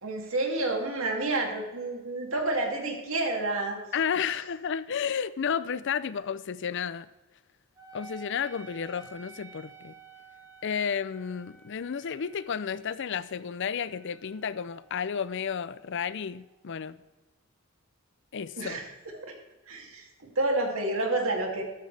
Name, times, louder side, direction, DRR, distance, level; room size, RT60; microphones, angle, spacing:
voice 1, 0.0-3.8 4.3-4.4 18.6-18.9 19.3-19.4 19.7-21.6, right 2 dB, 70° right, 2.6 m, -29 dB
voice 2, 3.9-7.1 7.9-9.9 10.6-17.0 18.3-18.8, left 7 dB, 60° left, 0.5 m, -32 dB
Wind instrument woodwind instrument, 7.8-16.7, right 4 dB, 20° right, 3.5 m, -53 dB
13.0 x 13.0 x 3.4 m
head